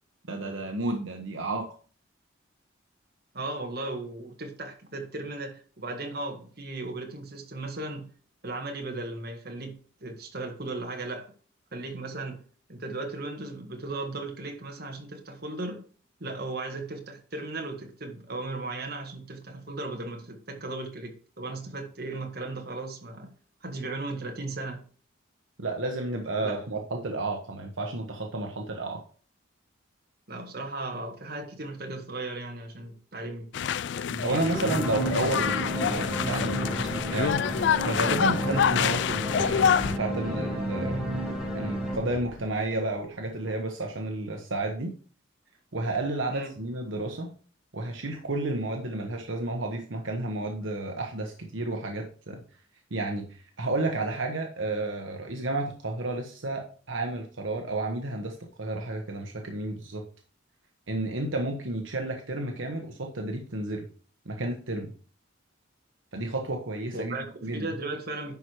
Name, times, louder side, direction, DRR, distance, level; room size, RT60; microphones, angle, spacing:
voice 1, 0.3-1.7 25.6-29.0 34.2-37.4 37.9-41.2 41.5-44.9 45.7-47.3 47.7-52.4 52.9-60.0 60.9-63.9 64.2-64.9 66.1-67.7, right 2 dB, 75° right, 1.1 m, -31 dB
voice 2, 3.3-8.1 8.4-11.3 11.7-12.4 12.7-15.8 16.2-23.3 23.6-24.9 26.4-26.6 30.3-33.6 34.1-34.8 46.3-46.5 66.9-68.4, right 2 dB, 50° right, 1.7 m, -36 dB
sound 1, 33.5-40.0, left 8 dB, 60° left, 0.3 m, -27 dB
sound 2, 34.5-43.0, right 1 dB, 5° right, 1.9 m, -32 dB
10.5 x 4.8 x 4.6 m
head